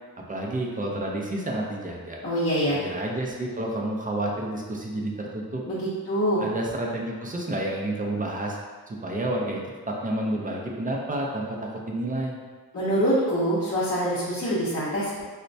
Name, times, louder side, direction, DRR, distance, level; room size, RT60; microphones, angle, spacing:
voice 1, 0.3-2.2 2.7-5.6 6.4-8.6 8.9-12.4, right 1 dB, 25° right, -1 dB, 0.4 m, -30 dB
voice 2, 2.2-2.8 5.7-6.4 12.7-15.2, equal, 40° left, -10 dB, 0.7 m, -25 dB
4.2 x 2.1 x 2.6 m, 1.4 s
wide cardioid pair, 140°, 37 cm